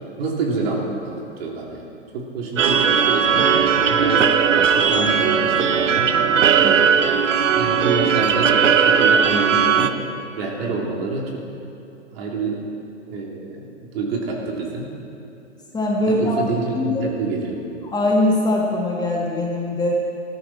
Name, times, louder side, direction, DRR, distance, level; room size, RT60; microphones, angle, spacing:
voice 1, 0.2-1.9 2.1-3.5 3.9-6.1 6.6-7.2 7.5-9.9 10.4-11.4 12.1-12.6 13.1-14.9 16.1-17.6, right 3 dB, 50° right, -1 dB, 3.3 m, -27 dB
sound 1, 2.6-9.9, right 7 dB, 75° right, 1.0 m, -17 dB
voice 2, 15.7-16.3 16.8-17.1 17.8-20.0, left 1 dB, 10° left, -3 dB, 1.6 m, -21 dB
18.5 x 14.0 x 4.3 m, 2.8 s
hypercardioid pair, 125°, 37 cm